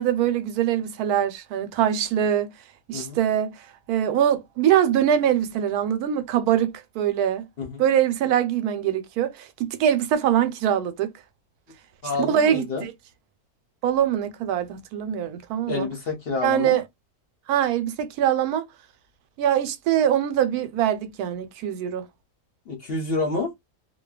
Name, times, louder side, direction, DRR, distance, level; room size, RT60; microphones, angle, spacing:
voice 1, 0.0-2.5 2.9-7.4 7.8-11.1 12.3-12.9 13.8-15.9 16.4-16.8 17.5-18.7 19.4-22.1, right 10 dB, 85° right, 1.1 m, -23 dB
voice 2, 12.0-12.9 15.7-16.8 22.7-23.5, left 3 dB, 50° left, 0.8 m, -28 dB
2.6 x 2.2 x 2.3 m
omnidirectional pair, 1.6 m